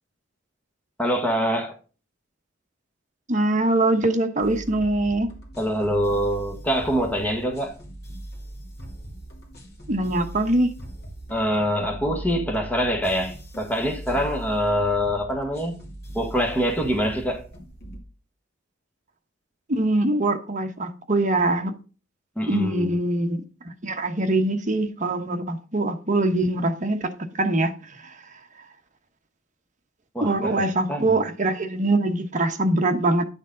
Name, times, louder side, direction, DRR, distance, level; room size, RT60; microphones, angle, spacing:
voice 1, 1.0-1.8 5.6-7.8 11.3-15.8 16.1-17.5 22.4-23.0 30.1-31.2, equal, 10° left, 1.4 m, -25 dB
voice 2, 3.3-5.3 9.9-10.7 19.7-21.7 22.5-27.7 28.0-28.1 30.2-33.2, right 2 dB, 40° right, 1.0 m, -23 dB
sound 1, 4.4-18.0, right 1 dB, 55° left, 2.7 m, -39 dB
10.5 x 6.3 x 3.8 m
head